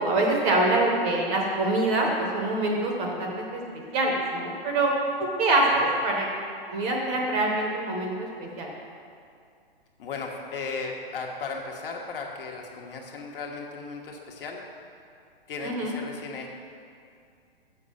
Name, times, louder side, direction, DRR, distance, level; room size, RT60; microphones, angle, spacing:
voice 1, 0.0-2.1 2.3-3.6 3.9-4.9 5.4-6.2 6.7-8.7 15.6-15.9, right 2 dB, 20° right, 0 dB, 0.9 m, -25 dB
voice 2, 10.0-14.6 15.5-16.5, left 4 dB, 60° left, 1 dB, 1.4 m, -36 dB
6.6 x 6.5 x 6.9 m, 2.4 s
hypercardioid pair, 160°, 30 cm